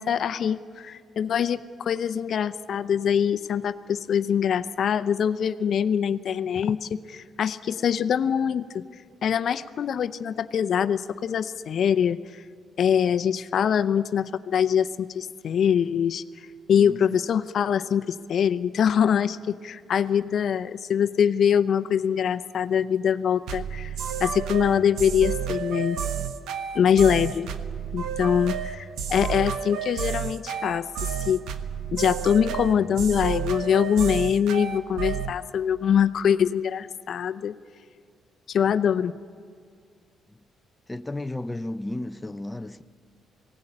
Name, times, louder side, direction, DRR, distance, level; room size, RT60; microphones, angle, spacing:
voice 1, 0.0-8.8 9.2-12.4 12.8-16.2 16.7-23.9 24.2-26.0 26.7-27.5 27.9-31.4 31.9-37.5 38.5-39.1, left 8 dB, 60° left, 0.6 m, -24 dB
sound 1, 23.5-35.3, right 7 dB, 85° right, 1.3 m, -31 dB
voice 2, 40.9-42.8, left 1 dB, 15° left, 0.6 m, -33 dB
19.5 x 17.0 x 10.0 m
cardioid pair, 90°, 0 cm